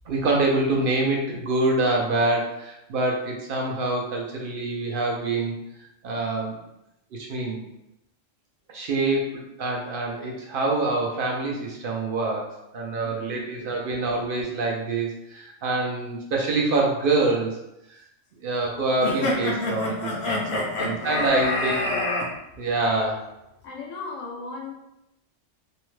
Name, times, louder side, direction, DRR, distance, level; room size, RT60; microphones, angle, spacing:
voice 1, 0.1-5.6 6.0-6.6 7.1-7.6 8.7-17.6 17.9-18.0 18.4-21.9 22.6-23.3, right 2 dB, 60° right, -1 dB, 0.6 m, -26 dB
voice 2, 13.0-13.8 20.3-21.0 21.3-21.6 21.8-21.9 23.6-24.7, left 4 dB, 85° left, -1 dB, 1.0 m, -38 dB
sound 1, 19.0-22.3, left 2 dB, 55° left, 0.6 m, -26 dB
2.7 x 2.1 x 3.1 m, 0.88 s
omnidirectional pair, 1.3 m